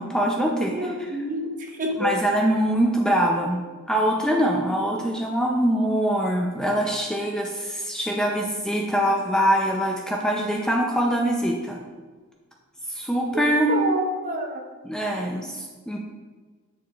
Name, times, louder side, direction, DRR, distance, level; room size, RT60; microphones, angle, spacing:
voice 1, 0.0-0.9 2.0-3.6 3.9-11.8 12.9-13.7 14.8-16.0, equal, 5° left, -1 dB, 0.5 m, -23 dB
voice 2, 0.7-2.1 13.3-14.6, right 1 dB, 40° right, 1 dB, 0.9 m, -28 dB
8.0 x 7.0 x 2.4 m, 1.4 s
head